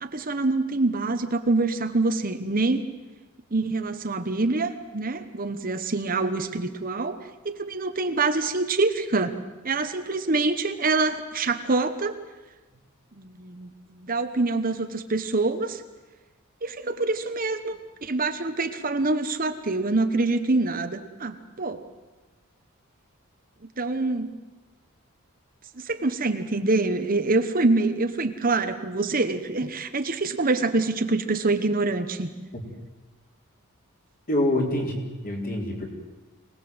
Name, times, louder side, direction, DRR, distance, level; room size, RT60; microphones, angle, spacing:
voice 1, 0.0-2.8 3.5-7.2 7.4-9.3 9.6-12.1 13.2-15.8 16.6-21.8 23.8-24.3 25.8-32.3, right 3 dB, 40° right, 7 dB, 1.2 m, -25 dB
voice 2, 34.3-35.8, left 1 dB, 40° left, 0 dB, 4.5 m, -26 dB
25.0 x 19.0 x 8.0 m, 1.2 s
head